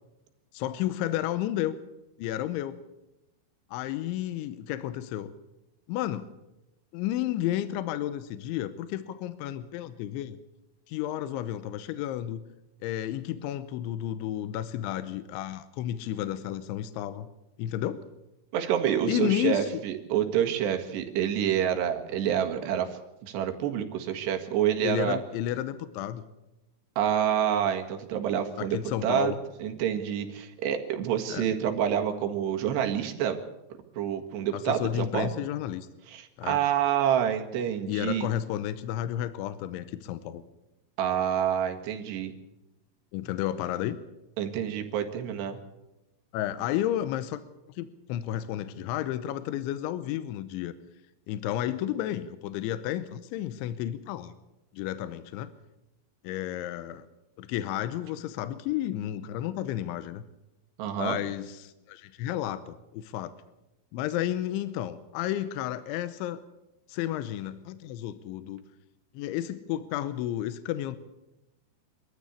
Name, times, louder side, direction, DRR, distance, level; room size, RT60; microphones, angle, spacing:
voice 1, 0.5-1.8 2.2-2.8 3.7-5.3 5.9-6.3 6.9-10.4 10.9-12.4 12.8-17.3 17.6-18.0 19.1-19.8 24.8-26.2 28.6-29.4 31.3-31.5 34.5-35.9 36.4-36.6 37.9-40.4 43.1-44.0 46.3-47.4 47.7-50.7 51.3-54.3 54.7-55.5 56.2-57.1 57.4-60.2 61.0-63.3 63.9-66.4 66.9-68.6 69.1-71.0, left 12 dB, 85° left, 13 dB, 3.2 m, -32 dB
voice 2, 18.5-25.2 27.0-29.4 29.6-33.4 34.0-35.3 36.1-38.3 41.0-42.3 44.4-45.6 60.8-61.2, right 9 dB, 70° right, 4 dB, 3.8 m, -28 dB
23.5 x 14.0 x 8.3 m, 0.95 s
omnidirectional pair, 5.4 m